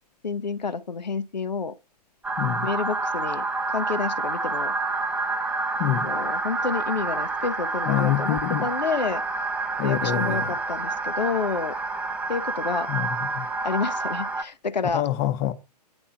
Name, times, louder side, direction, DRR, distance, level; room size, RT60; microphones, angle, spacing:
voice 1, 0.2-1.7 2.6-4.8 6.0-9.2 9.8-11.7 12.3-12.9 13.6-15.1, left 5 dB, 85° left, 0.7 m, -29 dB
sound 1, 2.2-14.4, right 3 dB, 5° right, 0.5 m, -28 dB
voice 2, 2.4-2.7 5.8-6.1 7.9-8.7 9.8-10.5 12.9-13.5 14.9-15.5, left 12 dB, 30° left, 0.7 m, -26 dB
8.9 x 3.5 x 5.6 m
figure-of-eight pair, 125°, 21 cm